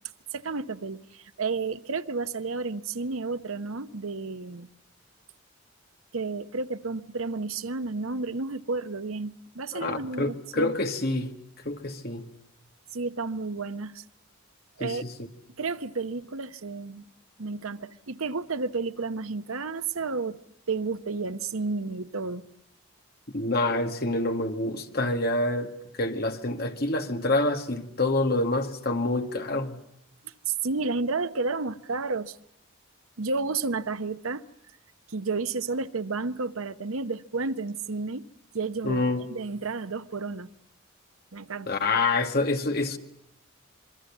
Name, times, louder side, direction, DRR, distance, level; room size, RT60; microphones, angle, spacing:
voice 1, 0.3-4.7 6.1-10.7 12.9-14.0 14.8-15.0 15.6-17.1 17.4-20.4 20.7-22.4 30.2-32.4 33.2-34.4 35.1-38.2 38.5-40.5 41.3-41.7, right 4 dB, 85° right, 0.9 m, -31 dB
voice 2, 9.7-11.3 11.7-12.3 14.8-15.1 23.3-25.7 26.0-29.8 38.8-39.2 41.7-43.0, left 2 dB, 50° left, 1.9 m, -27 dB
26.0 x 23.5 x 7.3 m
head